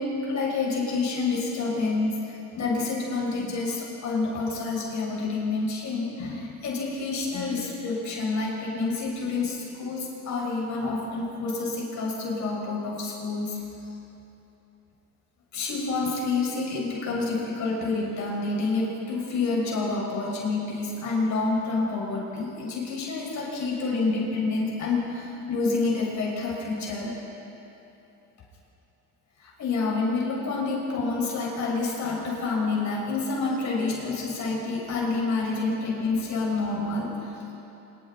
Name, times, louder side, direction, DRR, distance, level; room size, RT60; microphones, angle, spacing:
voice 1, 0.0-13.6 15.5-27.2 29.4-37.5, left 3 dB, 60° left, -3 dB, 6.6 m, -28 dB
26.0 x 22.5 x 4.5 m, 3.0 s
cardioid pair, 120°, 33 cm